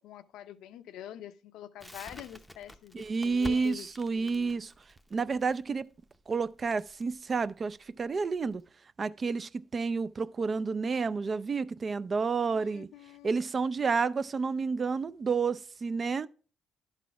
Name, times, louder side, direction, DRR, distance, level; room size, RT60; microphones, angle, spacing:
voice 1, 0.0-4.6 12.4-13.5, left 11 dB, 85° left, 0.5 m, -46 dB
Crackle, 1.8-8.6, left 1 dB, ahead, 0.7 m, -49 dB
voice 2, 2.9-4.7 5.1-5.9 6.3-8.6 9.0-12.9 13.2-16.3, right 4 dB, 40° right, 0.4 m, -30 dB
11.0 x 4.1 x 4.6 m
cardioid pair, 90°, 0 cm